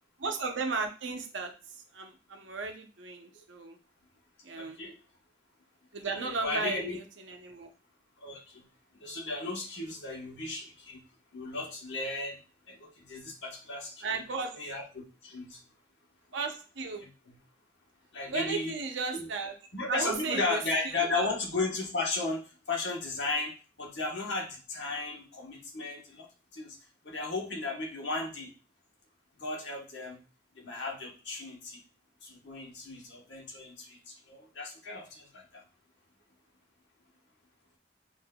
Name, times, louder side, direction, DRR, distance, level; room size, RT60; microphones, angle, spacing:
voice 1, 0.2-1.5 1.9-3.8 4.4-4.8 5.9-7.7 14.0-14.6 16.3-17.0 18.3-19.5 19.9-21.3, right 4 dB, 85° right, 4 dB, 0.7 m, -35 dB
voice 2, 4.6-4.9 6.2-7.0 8.2-8.6 8.9-11.0 11.3-12.4 12.7-14.1 14.5-15.6 17.0-17.4 18.1-18.8 19.1-19.3 19.7-26.3 26.5-26.8 27.0-28.5 29.4-30.2 30.6-31.8 32.2-35.6, left 3 dB, 75° left, 0 dB, 1.1 m, -35 dB
5.8 x 2.6 x 2.2 m, 0.35 s
head